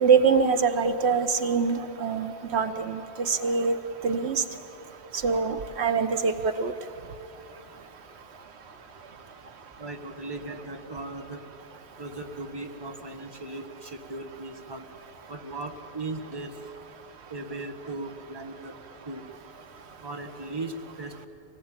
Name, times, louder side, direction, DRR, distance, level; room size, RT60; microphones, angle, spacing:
voice 1, 0.0-1.7 2.0-3.0 3.3-3.7 4.0-4.4 5.2-6.3 6.6-6.7, right 5 dB, 80° right, 9 dB, 1.2 m, -23 dB
voice 2, 9.8-11.4 12.0-14.8 15.3-16.5 17.3-18.8 19.1-19.2 20.0-21.3, right 2 dB, 25° right, 5 dB, 1.5 m, -37 dB
24.5 x 18.5 x 8.9 m, 2.9 s
omnidirectional pair, 1.1 m